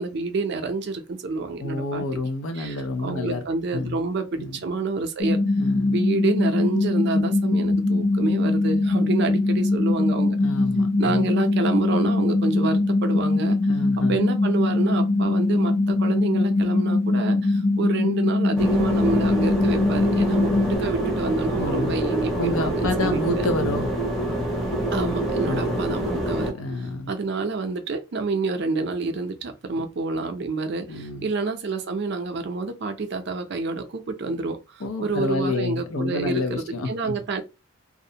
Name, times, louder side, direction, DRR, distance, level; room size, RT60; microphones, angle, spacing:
voice 1, 0.0-2.0 2.6-5.4 5.9-10.4 11.0-13.6 14.1-23.5 24.9-26.5 27.1-37.4, right 3 dB, 55° right, 0.4 m, -28 dB
voice 2, 1.6-3.4 3.7-4.0 4.4-4.6 5.6-6.0 10.4-11.3 13.7-14.2 21.6-22.0 22.4-23.9 25.5-25.8 26.0-26.2 26.5-27.1 29.8-29.9 30.9-31.3 34.8-37.2, left 2 dB, 85° left, 0.6 m, -29 dB
sound 1, 5.2-20.8, left 2 dB, 45° left, 0.7 m, -22 dB
sound 2, 18.6-26.5, right 1 dB, ahead, 0.6 m, -26 dB
2.4 x 2.1 x 2.7 m
head